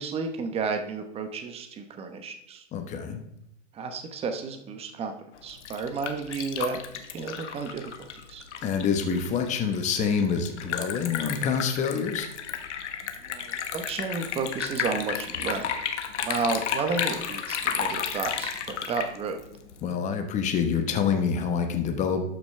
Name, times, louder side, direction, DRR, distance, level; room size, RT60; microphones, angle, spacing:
voice 1, 0.0-2.6 3.7-5.1 5.4-7.9 8.3-8.4 13.2-15.7 16.2-19.4, right 4 dB, 15° right, 6 dB, 0.9 m, -32 dB
voice 2, 2.7-3.2 8.6-12.3 19.8-22.2, left 6 dB, 20° left, 6 dB, 0.9 m, -26 dB
Liquid, 5.4-19.9, left 8 dB, 75° left, 1.3 m, -33 dB
12.5 x 6.2 x 3.2 m, 0.80 s
hypercardioid pair, 130°, 36 cm